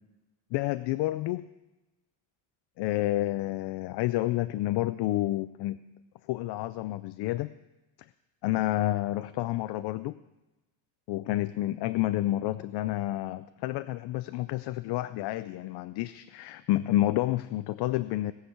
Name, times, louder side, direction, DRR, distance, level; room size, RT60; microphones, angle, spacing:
voice 1, 0.5-1.4 2.8-5.8 6.3-7.5 8.4-10.1 11.1-18.3, left 15 dB, 65° left, 13 dB, 0.5 m, -29 dB
18.5 x 6.5 x 7.9 m, 1.0 s
cardioid pair, 175°, 44 cm